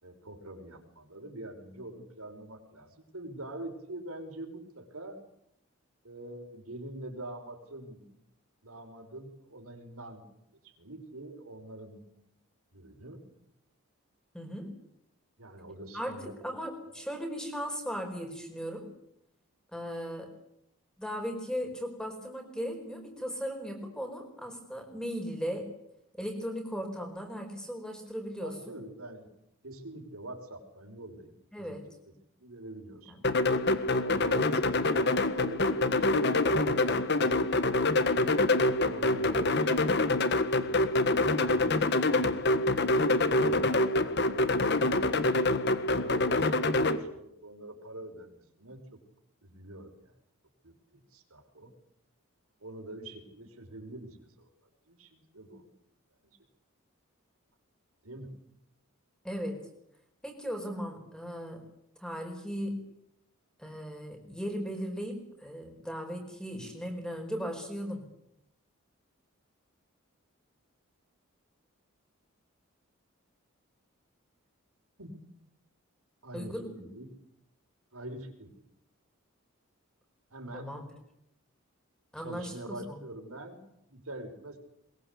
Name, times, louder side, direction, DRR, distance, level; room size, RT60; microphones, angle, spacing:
voice 1, 0.0-5.2 6.0-8.1 8.6-10.3 10.6-12.0 12.7-13.2 15.4-16.4 17.0-17.1 28.4-29.3 29.6-31.8 32.1-33.3 34.0-37.3 37.8-38.1 38.6-40.0 40.5-44.9 45.9-49.0 49.4-50.1 50.6-51.7 52.6-54.5 54.9-55.6 56.2-56.4 58.0-58.4 75.0-75.1 76.2-77.1 77.9-78.6 80.3-80.7 82.2-84.6, right 1 dB, 80° right, 4 dB, 5.7 m, -45 dB
voice 2, 14.3-14.7 15.9-18.9 19.7-20.3 21.0-25.7 26.1-28.8 31.5-31.9 33.1-33.2 59.2-59.6 60.2-61.7 62.0-62.8 63.6-68.0 76.3-76.8 80.5-80.8 82.1-82.8, equal, 5° left, 4 dB, 4.9 m, -37 dB
sound 1, 33.2-47.0, left 2 dB, 50° left, 1.7 m, -26 dB
22.5 x 22.5 x 8.4 m, 0.78 s
head